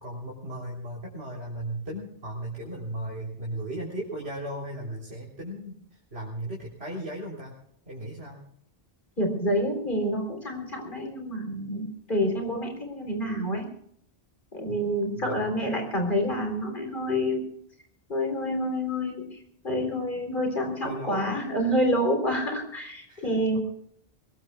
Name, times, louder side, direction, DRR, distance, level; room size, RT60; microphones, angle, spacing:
voice 1, 0.0-5.8 6.1-7.5 7.9-8.4 14.6-14.8 15.2-15.5 20.8-21.5 23.1-23.3, right 1 dB, 75° right, -3 dB, 3.8 m, -36 dB
voice 2, 9.2-13.6 14.5-17.4 18.1-19.4 19.6-23.6, equal, 50° left, 2 dB, 4.0 m, -28 dB
23.5 x 20.5 x 2.3 m, 0.66 s
omnidirectional pair, 1.1 m